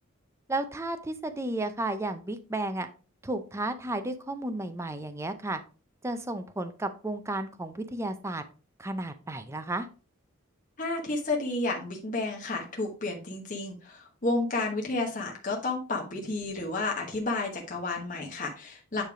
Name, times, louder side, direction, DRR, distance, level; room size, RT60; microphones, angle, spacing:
voice 1, 0.5-2.9 3.2-5.6 6.0-8.4 8.8-9.9, right 2 dB, 15° right, 8 dB, 0.5 m, -33 dB
voice 2, 10.8-19.0, left 2 dB, 35° left, 0 dB, 1.2 m, -31 dB
9.1 x 3.4 x 4.8 m, 0.36 s
head